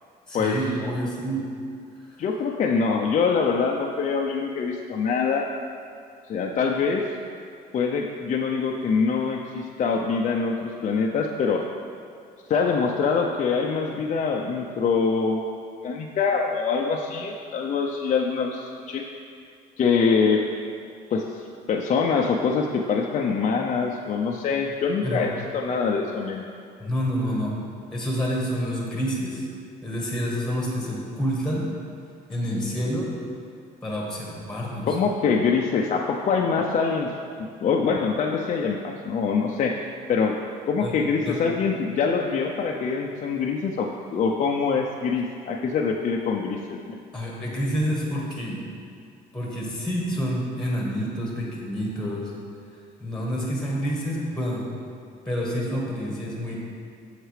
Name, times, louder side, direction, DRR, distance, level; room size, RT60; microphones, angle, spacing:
voice 1, 0.3-1.4 25.0-25.3 26.8-27.6 27.9-29.4 29.8-31.7 32.3-33.1 33.8-34.9 40.8-40.9 41.2-41.4 47.1-48.6 49.3-52.3 53.0-54.7 55.2-56.6, equal, 5° left, -3 dB, 1.4 m, -28 dB
voice 2, 2.2-5.5 6.3-7.1 7.7-11.6 12.5-15.5 15.8-19.0 19.8-20.4 21.1-26.5 34.8-37.1 37.4-40.4 40.7-46.9, left 5 dB, 45° left, 0 dB, 0.5 m, -24 dB
7.8 x 6.5 x 3.3 m, 2.3 s
cardioid pair, 110°, 17 cm